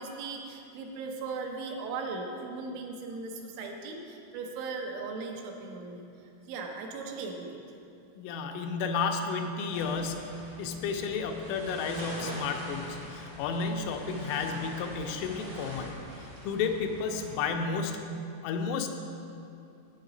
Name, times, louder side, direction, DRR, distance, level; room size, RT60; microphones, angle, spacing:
voice 1, 0.0-6.1 6.5-7.6, right 4 dB, 80° right, 2 dB, 3.1 m, -38 dB
voice 2, 8.2-15.9 16.4-18.2 18.4-18.9, left 5 dB, 90° left, 4 dB, 3.2 m, -32 dB
sound 1, 9.7-17.3, equal, 55° right, 1.1 m, -44 dB
10.0 x 8.3 x 3.8 m, 2.6 s
omnidirectional pair, 5.6 m